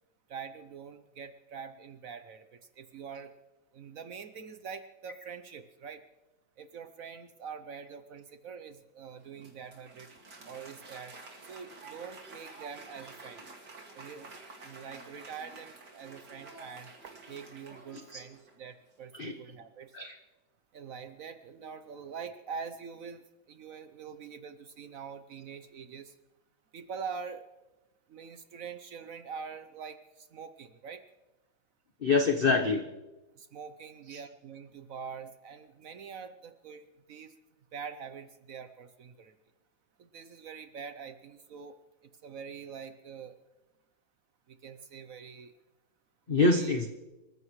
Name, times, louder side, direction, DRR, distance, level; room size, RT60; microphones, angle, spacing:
voice 1, 0.3-3.3 3.7-6.1 6.6-10.1 10.4-11.2 11.5-13.4 13.9-14.3 14.6-19.9 20.7-26.1 26.7-27.5 28.1-31.0 33.3-37.3 37.7-39.3 40.0-41.7 42.2-43.4 44.5-45.5 46.3-46.7, right 6 dB, 70° right, 10 dB, 0.8 m, -44 dB
Applause, 9.2-18.7, right 3 dB, 50° right, 2.8 m, -50 dB
voice 2, 32.0-32.8 34.1-34.2 46.3-46.9, left 3 dB, 45° left, 5 dB, 0.7 m, -25 dB
25.5 x 14.5 x 3.2 m, 1.0 s
omnidirectional pair, 2.3 m